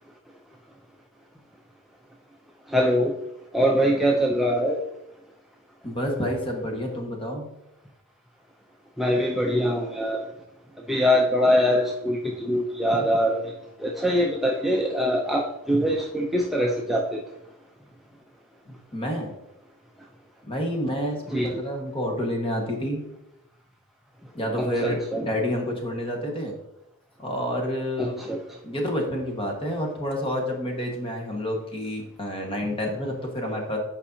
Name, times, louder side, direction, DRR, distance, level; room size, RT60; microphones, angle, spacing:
voice 1, 2.7-3.1 3.5-4.8 9.0-10.2 10.9-13.5 13.8-17.2 21.3-21.5 24.6-25.3 28.0-28.4, equal, ahead, -1 dB, 0.5 m, -23 dB
voice 2, 5.8-7.5 18.7-19.3 20.5-23.0 24.3-26.5 27.2-28.4 28.6-33.8, equal, 25° left, 1 dB, 1.4 m, -29 dB
8.3 x 5.3 x 2.7 m, 0.88 s
head